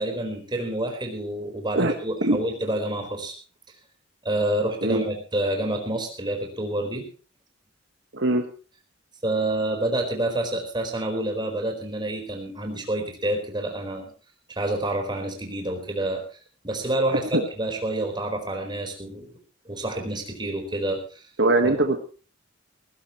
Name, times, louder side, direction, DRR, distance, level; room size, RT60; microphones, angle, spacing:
voice 1, 0.0-3.3 4.2-7.1 9.2-14.1 14.6-16.2 16.6-19.3 19.6-21.2 21.6-21.8, right 1 dB, 25° right, 4 dB, 4.4 m, -28 dB
voice 2, 8.1-8.4 17.3-17.5 21.4-22.0, right 2 dB, 60° right, 5 dB, 1.6 m, -21 dB
19.0 x 16.5 x 3.1 m, 0.37 s
head